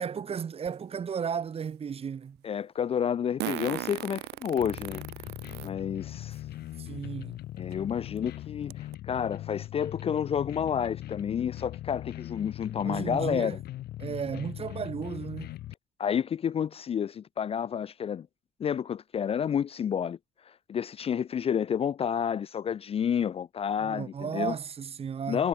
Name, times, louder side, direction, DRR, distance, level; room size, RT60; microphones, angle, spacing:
voice 1, 0.0-2.4 6.8-7.4 12.8-13.6 14.0-15.5 23.8-25.4, right 7 dB, 35° right, 1.4 m, -34 dB
Fart, 0.7-0.8 3.4-5.7 6.3-6.4 7.7-7.8 8.2-8.3 8.7-8.9, right 18 dB, 75° right, 0.5 m, -36 dB
voice 2, 2.4-5.0 5.6-6.4 7.6-13.6 16.0-18.3 18.6-20.2 20.5-24.5 25.3-25.5, left 8 dB, 35° left, 0.5 m, -30 dB
sound 1, 4.6-15.7, left 14 dB, 70° left, 2.3 m, -40 dB
cardioid pair, 110°, 17 cm